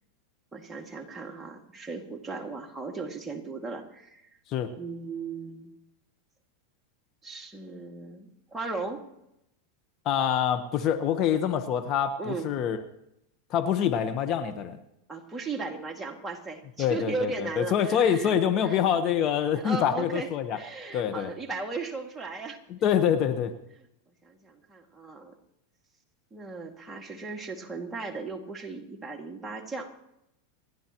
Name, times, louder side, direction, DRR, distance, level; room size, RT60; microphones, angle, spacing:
voice 1, 0.5-4.3 4.7-5.7 7.2-9.0 12.2-12.5 15.1-18.8 19.6-22.6 24.2-25.3 26.3-29.9, right 3 dB, 10° right, 1 dB, 2.3 m, -37 dB
voice 2, 10.0-12.8 13.5-14.8 16.8-20.6 20.9-21.3 22.7-23.5, left 8 dB, 45° left, 8 dB, 1.2 m, -25 dB
29.0 x 11.0 x 3.1 m, 0.83 s
hypercardioid pair, 115°, 0 cm